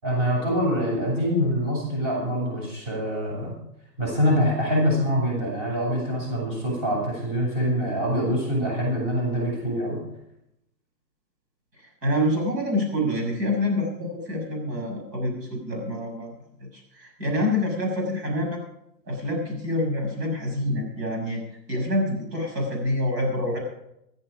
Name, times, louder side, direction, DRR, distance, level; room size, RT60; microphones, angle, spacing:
voice 1, 0.0-3.5 4.0-10.0, equal, 30° right, -2 dB, 7.5 m, -25 dB
voice 2, 12.0-16.3 16.6-18.6 19.0-21.4 21.7-23.6, left 1 dB, 75° right, 1 dB, 6.7 m, -26 dB
14.0 x 14.0 x 5.0 m, 0.80 s
hypercardioid pair, 160°, 50 cm